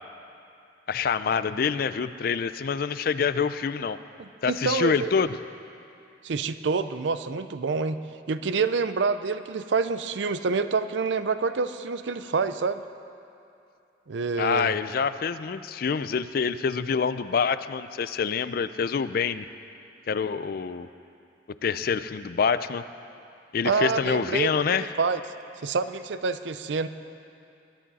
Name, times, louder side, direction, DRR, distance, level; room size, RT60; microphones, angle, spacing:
voice 1, 0.9-4.0 4.4-5.4 14.4-19.5 20.1-20.9 21.6-22.8 23.5-24.9, left 6 dB, 55° left, 13 dB, 0.4 m, -26 dB
voice 2, 4.2-5.1 6.2-8.0 8.3-12.8 14.1-14.8 23.6-25.2 25.6-26.9, right 4 dB, 80° right, 12 dB, 0.5 m, -27 dB
21.0 x 11.0 x 4.1 m, 2.6 s
head